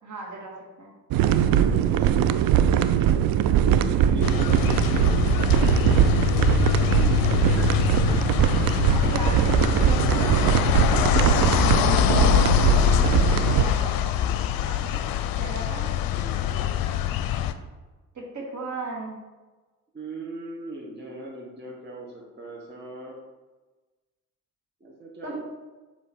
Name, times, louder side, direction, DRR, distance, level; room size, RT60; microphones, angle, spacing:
voice 1, 0.0-0.9 7.0-7.3 8.9-11.6 12.0-13.0 13.4-13.9 14.6-15.1 15.4-15.8 18.1-19.2 25.2-25.4, right 2 dB, 50° right, -2 dB, 1.9 m, -36 dB
sound 1, 1.1-13.6, right 10 dB, 65° right, 0.5 m, -21 dB
voice 2, 3.7-6.4 6.7-7.6 9.5-12.1 14.2-15.4 16.1-16.7 19.9-23.1 24.8-25.4, right 1 dB, 30° right, -3 dB, 1.5 m, -41 dB
sound 2, 4.2-17.5, left 11 dB, 65° left, 0.5 m, -24 dB
7.0 x 3.1 x 4.5 m, 1.2 s
hypercardioid pair, 50°, 38 cm